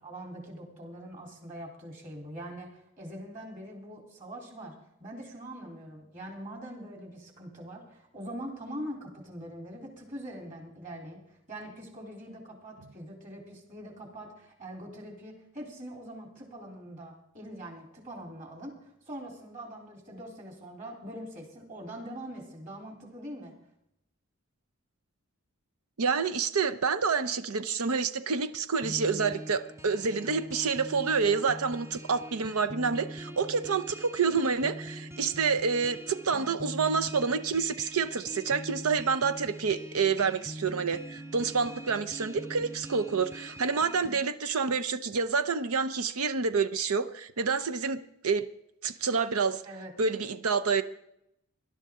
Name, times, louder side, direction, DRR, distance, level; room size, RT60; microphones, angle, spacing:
voice 1, 0.0-23.6 30.1-30.3 49.6-49.9, right 1 dB, 35° right, 1 dB, 3.5 m, -43 dB
voice 2, 26.0-48.4 48.8-49.6 50.0-50.8, right 5 dB, 85° right, 11 dB, 0.7 m, -28 dB
sound 1, 28.8-44.2, equal, 15° right, 0.5 m, -43 dB
19.0 x 11.5 x 3.7 m, 0.77 s
head